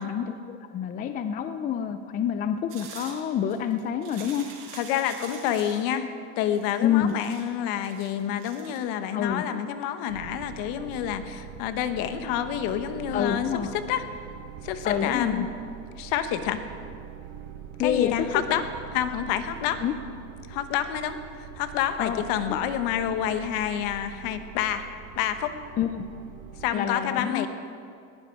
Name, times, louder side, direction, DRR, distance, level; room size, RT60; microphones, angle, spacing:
voice 1, 0.0-4.5 6.8-7.1 9.1-9.4 13.1-13.7 14.8-15.5 17.8-18.1 19.8-19.9 22.0-22.2 25.8-26.0 26.7-27.5, left 9 dB, 20° left, 9 dB, 0.5 m, -27 dB
sound 1, 2.7-5.8 6.5-8.8, right 6 dB, 80° right, 5.4 m, -45 dB
voice 2, 4.7-6.1 6.4-13.5 13.7-14.2 14.6-15.5 16.0-16.6 17.8-18.6 18.9-19.8 20.5-24.9 25.2-25.5 26.6-27.5, left 10 dB, 55° left, 9 dB, 1.4 m, -28 dB
sound 2, 10.1-26.7, right 9 dB, 60° right, 1.5 m, -43 dB
20.0 x 15.5 x 4.7 m, 2.4 s
supercardioid pair, 145°, 41 cm